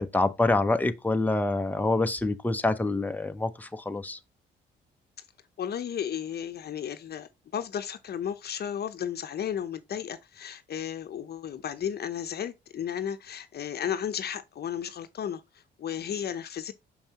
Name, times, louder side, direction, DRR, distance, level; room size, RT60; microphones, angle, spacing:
voice 1, 0.0-4.2, left 2 dB, 10° left, 0.7 m, -26 dB
voice 2, 5.6-16.7, left 9 dB, 55° left, 0.8 m, -34 dB
6.3 x 5.4 x 3.0 m
cardioid pair, 90°, 20 cm